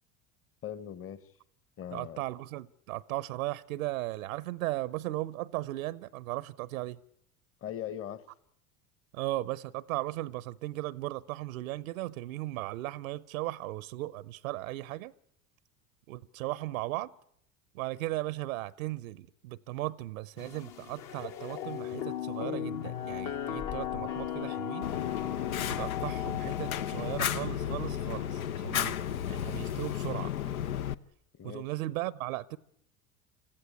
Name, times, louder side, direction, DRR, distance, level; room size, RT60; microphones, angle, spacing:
voice 1, 0.6-1.2 1.8-2.2 7.6-8.2 31.3-31.7, left 10 dB, 30° left, 1.4 m, -40 dB
voice 2, 1.9-7.0 9.1-15.1 16.1-17.1 17.7-24.9 25.7-29.0 29.3-30.3 31.4-32.6, right 17 dB, 70° right, 0.8 m, -36 dB
sound 1, 20.4-27.2, left 11 dB, 50° left, 1.5 m, -37 dB
Fire, 24.8-30.9, left 10 dB, 75° left, 0.9 m, -33 dB
26.0 x 14.5 x 9.6 m
hypercardioid pair, 75°, 42 cm